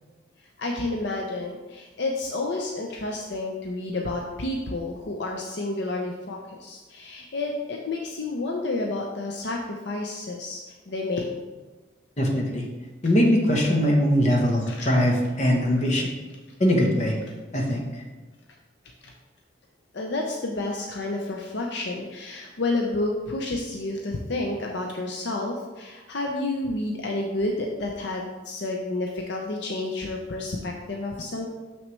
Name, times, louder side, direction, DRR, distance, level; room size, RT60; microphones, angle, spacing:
voice 1, 0.6-10.6 10.9-11.3 14.7-15.0 19.0-19.1 19.9-31.5, left 2 dB, 60° left, 1 dB, 0.6 m, -30 dB
voice 2, 12.2-12.7 13.0-16.1 16.6-17.2 17.5-17.8, equal, 35° left, 0 dB, 1.0 m, -21 dB
6.3 x 6.0 x 3.2 m, 1.3 s
head